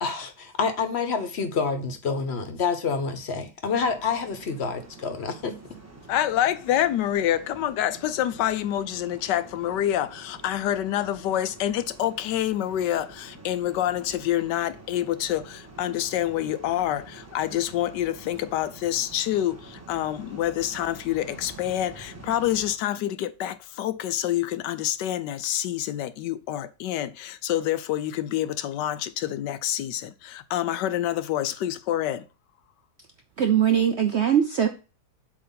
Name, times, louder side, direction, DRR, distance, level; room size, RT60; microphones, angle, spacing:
voice 1, 0.0-5.6, left 5 dB, 45° left, 1.1 m, -28 dB
sound 1, 3.6-22.8, right 3 dB, 10° right, 1.0 m, -47 dB
voice 2, 6.1-32.2, left 12 dB, 85° left, 1.3 m, -27 dB
voice 3, 33.4-34.7, right 9 dB, 65° right, 0.6 m, -21 dB
7.6 x 3.1 x 5.6 m
omnidirectional pair, 1.8 m